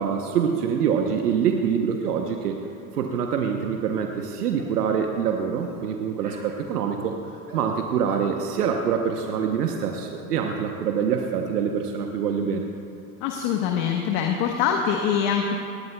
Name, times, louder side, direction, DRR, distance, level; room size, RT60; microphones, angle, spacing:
voice 1, 0.0-2.6 2.9-7.1 7.5-12.7, right 7 dB, 85° right, 3 dB, 1.0 m, -25 dB
sound 1, 4.0-4.2 4.6-4.8 5.6-5.9 6.2-6.5 7.5-7.7 8.1-8.3 10.0-10.2, right 2 dB, 20° right, 3.8 m, -46 dB
voice 2, 13.2-15.6, left 7 dB, 60° left, 2 dB, 1.3 m, -24 dB
19.5 x 18.0 x 2.3 m, 2.6 s
hypercardioid pair, 85°, 46 cm